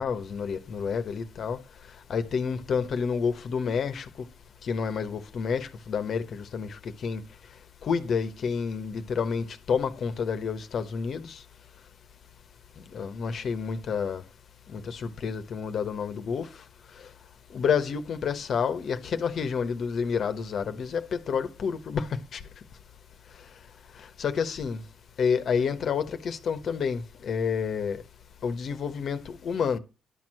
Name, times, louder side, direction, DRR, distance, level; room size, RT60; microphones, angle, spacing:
voice 1, 0.0-1.6 2.1-4.1 4.6-7.2 7.8-11.4 12.9-14.2 14.7-16.5 17.5-22.4 24.2-24.8 25.2-28.0 28.4-29.8, left 6 dB, 60° left, 1.1 m, -29 dB
11.5 x 4.6 x 7.6 m
cardioid pair, 90°, 0 cm